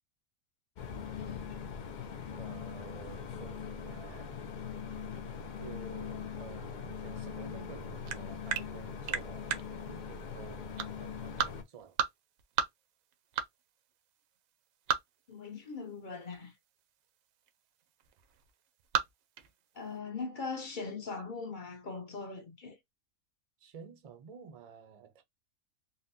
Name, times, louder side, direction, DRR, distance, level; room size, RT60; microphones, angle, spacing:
sound 1, 0.8-11.6, left 6 dB, 80° left, 0.4 m, -41 dB
voice 1, 2.4-4.3 5.6-12.0 23.6-25.2, right 6 dB, 45° right, 0.5 m, -51 dB
sound 2, 7.8-20.0, right 8 dB, 75° right, 1.0 m, -36 dB
voice 2, 15.3-16.5 19.7-22.8, left 4 dB, 45° left, 0.7 m, -40 dB
4.0 x 2.1 x 2.6 m
omnidirectional pair, 1.5 m